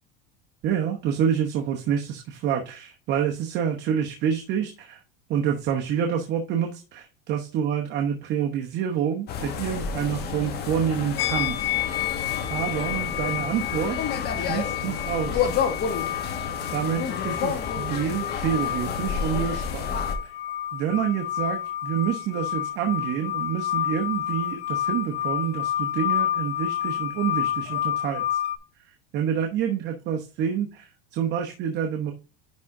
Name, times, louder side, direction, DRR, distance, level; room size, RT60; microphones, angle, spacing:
voice 1, 0.6-5.0 5.3-11.7 12.5-14.1 14.3-15.5 16.2-16.4 16.7-20.0 20.2-20.4 20.7-28.4 28.8-32.1, right 8 dB, 35° right, 3 dB, 1.0 m, -28 dB
sound 1, 9.3-20.2, left 6 dB, 35° left, 1.3 m, -30 dB
sound 2, 11.2-28.6, left 12 dB, 75° left, 0.9 m, -30 dB
10.5 x 3.8 x 3.7 m, 0.32 s
supercardioid pair, 150°, 29 cm